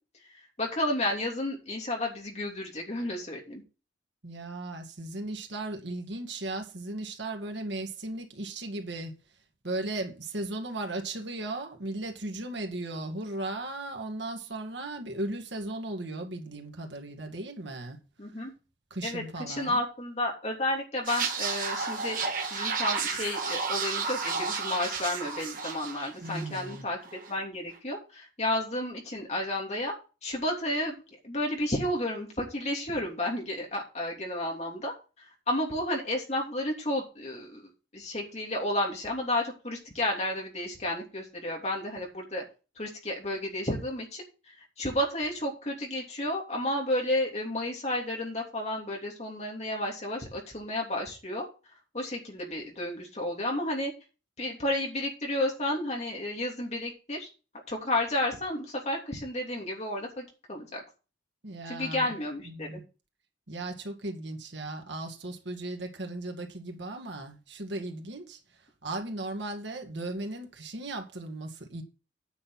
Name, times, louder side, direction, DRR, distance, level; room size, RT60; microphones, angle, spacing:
voice 1, 0.6-3.6 18.2-18.5 19.0-22.2 22.5-27.0 27.3-29.9 30.2-31.0 31.2-34.9 35.5-42.4 42.8-44.2 44.8-51.4 51.9-53.9 54.4-57.3 57.7-60.8 61.7-62.8, left 1 dB, 35° left, 3.0 m, -32 dB
voice 2, 4.2-9.2 9.6-18.0 18.9-19.8 26.2-26.8 61.4-62.2 62.4-62.8 63.5-68.4 68.8-71.8, right 2 dB, 80° right, 2.1 m, -36 dB
sound 1, 21.0-26.8 27.0-27.3, right 5 dB, 50° right, 1.9 m, -32 dB
9.6 x 6.2 x 5.9 m
head